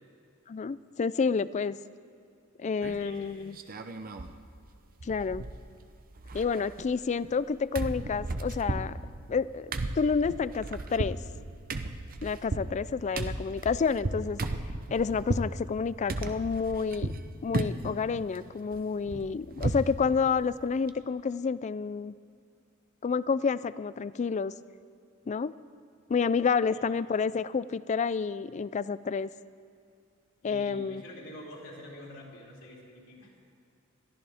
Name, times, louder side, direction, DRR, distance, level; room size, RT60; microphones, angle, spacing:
voice 1, 0.5-1.8 2.6-3.6 5.0-5.5 6.3-9.0 9.3-11.2 12.2-14.4 14.9-17.1 17.4-22.1 23.0-24.5 25.3-25.5 26.1-29.3 30.4-31.0, left 5 dB, 35° left, 17 dB, 0.3 m, -29 dB
sound 1, 2.8-3.2 3.5-4.3 4.6-4.7 5.0-5.8 6.1-7.5 7.7-15.5 16.1-17.2 17.5-18.0 18.3-19.9 20.3-20.4 20.7-20.9, right 2 dB, 45° right, 0.7 m, -34 dB
voice 2, 2.9-3.5 26.7-26.9 30.4-33.3, left 1 dB, 65° left, -4 dB, 3.8 m, -47 dB
21.5 x 14.0 x 3.5 m, 2.5 s
head